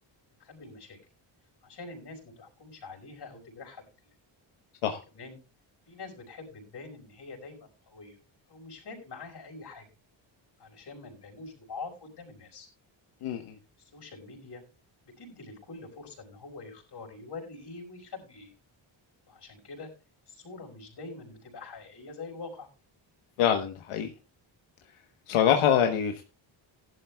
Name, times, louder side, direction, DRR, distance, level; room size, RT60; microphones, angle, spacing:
voice 1, 0.4-1.0 1.6-4.1 5.1-5.4 5.9-8.2 8.5-9.9 10.6-12.7 13.8-14.6 15.0-18.5 19.3-19.9 20.3-22.7, left 3 dB, 55° left, 2 dB, 5.2 m, -45 dB
voice 2, 13.2-13.5 23.4-24.1 25.3-26.2, left 9 dB, 90° left, 4 dB, 1.2 m, -25 dB
16.5 x 11.5 x 2.3 m, 0.29 s
cardioid pair, 100°, 48 cm